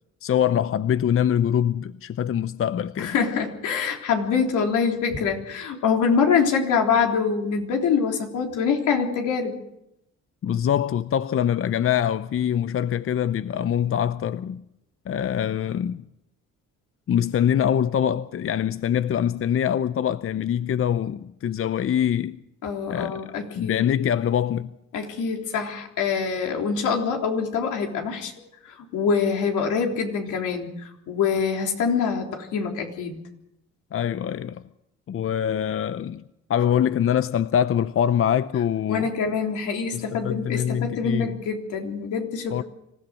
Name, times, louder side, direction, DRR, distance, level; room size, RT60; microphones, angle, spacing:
voice 1, 0.2-3.1 10.4-14.6 15.1-16.0 17.1-22.4 22.9-23.2 23.5-24.7 33.9-34.6 35.1-36.2 36.5-39.1 39.9-41.3 42.5-42.6, left 9 dB, 45° left, 0.7 m, -24 dB
voice 2, 3.0-9.6 22.6-23.8 24.9-28.3 28.7-30.7 31.1-33.2 38.9-42.6, left 6 dB, 85° left, 3.8 m, -25 dB
26.0 x 15.5 x 6.5 m
cardioid pair, 90°, 30 cm